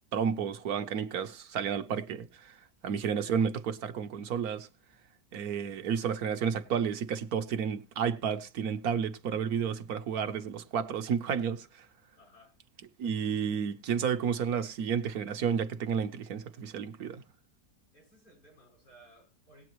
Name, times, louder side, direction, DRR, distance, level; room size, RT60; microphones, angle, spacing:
voice 1, 0.1-4.7 5.3-11.9 13.0-17.2, right 7 dB, 70° right, 1.3 m, -31 dB
voice 2, 12.2-12.6 17.9-19.7, right 1 dB, 85° left, 7.2 m, -59 dB
19.0 x 8.6 x 3.1 m
omnidirectional pair, 1.7 m